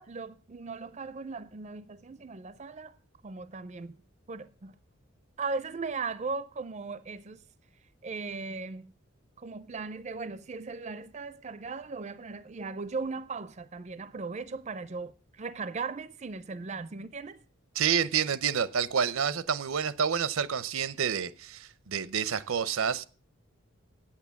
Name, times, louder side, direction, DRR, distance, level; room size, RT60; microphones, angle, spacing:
voice 1, 0.0-3.0 3.2-4.0 4.3-4.7 5.4-7.4 8.0-8.9 9.4-17.4, right 4 dB, 35° right, 0.4 m, -38 dB
voice 2, 17.8-23.0, right 7 dB, 80° right, 0.6 m, -29 dB
8.8 x 8.6 x 7.0 m
head